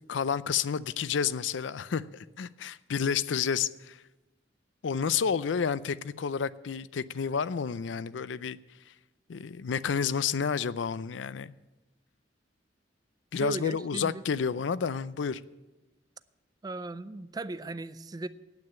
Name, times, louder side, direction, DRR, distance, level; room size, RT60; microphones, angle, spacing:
voice 1, 0.1-4.0 4.8-8.6 9.3-11.5 13.3-15.4, left 6 dB, 80° left, 0.5 m, -30 dB
voice 2, 13.4-14.2 16.6-18.3, right 2 dB, 20° right, 0.4 m, -37 dB
9.5 x 8.9 x 8.6 m
head